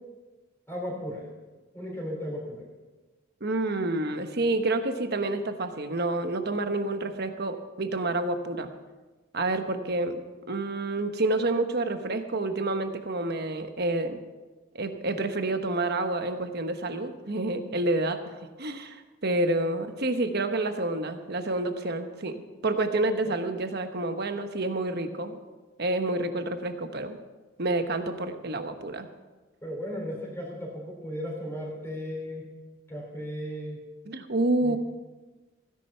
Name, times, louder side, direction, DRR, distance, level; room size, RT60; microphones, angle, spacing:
voice 1, 0.7-1.2 1.7-2.6 29.6-32.5 32.9-33.8 34.6-34.8, equal, 10° left, -1 dB, 3.7 m, -35 dB
voice 2, 3.4-8.7 9.3-10.2 10.5-14.2 14.7-25.4 25.8-27.2 27.6-29.1 34.0-34.8, right 2 dB, 50° right, 7 dB, 1.1 m, -28 dB
16.5 x 10.5 x 5.7 m, 1.2 s
head